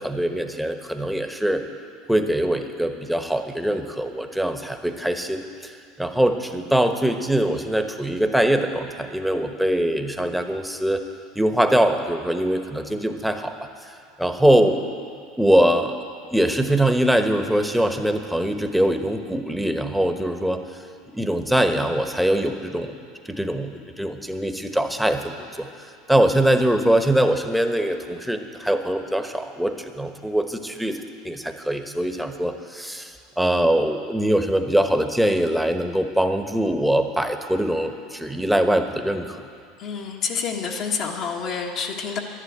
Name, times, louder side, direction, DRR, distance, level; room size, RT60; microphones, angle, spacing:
voice 1, 0.0-1.6 2.1-5.7 6.0-11.0 11.3-13.7 14.2-14.8 15.4-16.0 16.3-20.6 21.1-22.9 23.2-25.7 26.1-31.0 31.2-39.4, right 1 dB, ahead, 6 dB, 1.1 m, -22 dB
voice 2, 39.8-42.2, left 6 dB, 55° left, -2 dB, 1.4 m, -28 dB
11.5 x 11.0 x 8.1 m, 2.4 s
hypercardioid pair, 90°, 0 cm